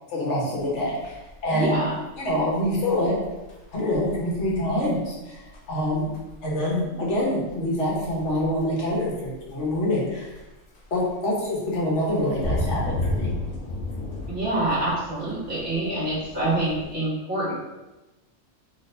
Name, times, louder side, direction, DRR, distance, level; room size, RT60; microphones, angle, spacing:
voice 1, 0.1-1.2 1.4-1.8 2.2-3.1 3.7-5.4 5.7-6.1 6.4-10.3 10.9-13.3, left 1 dB, 70° left, -4 dB, 1.5 m, -25 dB
sound 1, 0.6-16.9, left 1 dB, 85° left, 1.3 m, -35 dB
voice 2, 1.5-2.0 14.3-17.5, right 1 dB, 50° right, -8 dB, 1.3 m, -26 dB
4.1 x 3.3 x 3.3 m, 1.0 s
omnidirectional pair, 1.3 m